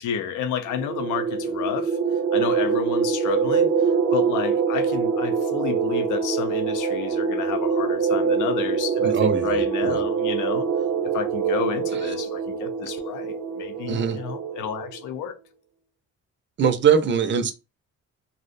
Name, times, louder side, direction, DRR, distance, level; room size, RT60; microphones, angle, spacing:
voice 1, 0.0-2.0 2.3-3.7 4.1-10.7 11.1-15.3, left 8 dB, 80° left, 0.5 m, -31 dB
sound 1, 0.7-15.0, right 6 dB, 80° right, 0.7 m, -24 dB
voice 2, 9.0-10.0 13.9-14.2 16.6-17.5, right 7 dB, 40° right, 0.5 m, -22 dB
2.4 x 2.0 x 2.5 m
cardioid pair, 90°, 30 cm